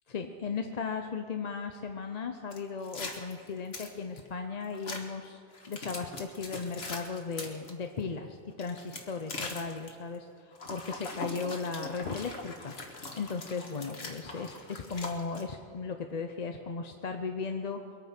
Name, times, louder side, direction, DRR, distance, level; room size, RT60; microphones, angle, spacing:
voice 1, 0.1-5.4 5.7-17.8, left 5 dB, 40° left, 5 dB, 0.7 m, -36 dB
sound 1, 2.5-4.3 4.7-5.0 5.5-7.7 8.5-9.9 10.5-15.4, left 3 dB, 60° left, 1.8 m, -41 dB
22.5 x 9.0 x 5.9 m, 2.5 s
omnidirectional pair, 1.2 m